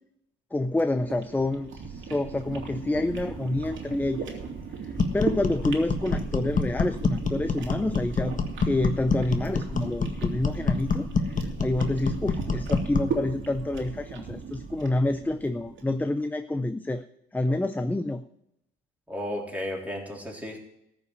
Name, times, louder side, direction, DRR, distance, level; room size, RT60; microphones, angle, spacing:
voice 1, 0.5-4.3 4.8-8.4 8.6-17.0 17.3-18.2, left 2 dB, 10° left, 10 dB, 0.5 m, -28 dB
sound 1, 0.7-16.0, right 6 dB, 70° right, 2.7 m, -37 dB
sound 2, 5.0-13.2, left 4 dB, 40° left, 1.3 m, -27 dB
voice 2, 19.1-20.6, left 1 dB, 5° right, -1 dB, 3.8 m, -34 dB
14.0 x 5.6 x 9.6 m, 0.83 s
cardioid pair, 85°, 20 cm